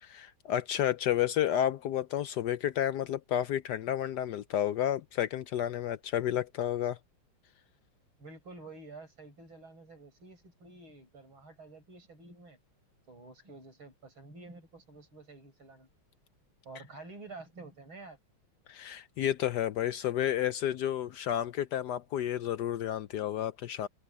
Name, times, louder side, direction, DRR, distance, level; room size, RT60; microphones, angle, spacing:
voice 1, 0.0-7.0 18.7-23.9, left 11 dB, 70° left, 1.0 m, -31 dB
voice 2, 8.2-12.6 13.1-15.9 16.6-18.2, right 3 dB, 80° right, 8.2 m, -50 dB
omnidirectional pair, 2.2 m